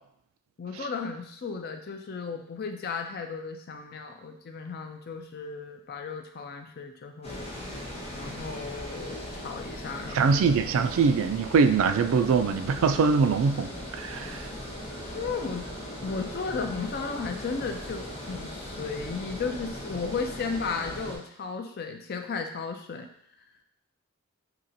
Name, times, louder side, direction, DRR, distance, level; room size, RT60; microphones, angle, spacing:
voice 1, 0.6-7.5 8.1-10.3 15.1-15.7 16.0-23.1, left 5 dB, 45° left, 5 dB, 0.4 m, -35 dB
Water, 7.2-21.2, equal, 30° left, 1.1 m, -39 dB
voice 2, 10.1-13.7 13.9-14.4, right 5 dB, 70° right, 9 dB, 0.3 m, -23 dB
5.5 x 2.8 x 2.6 m, 0.71 s
head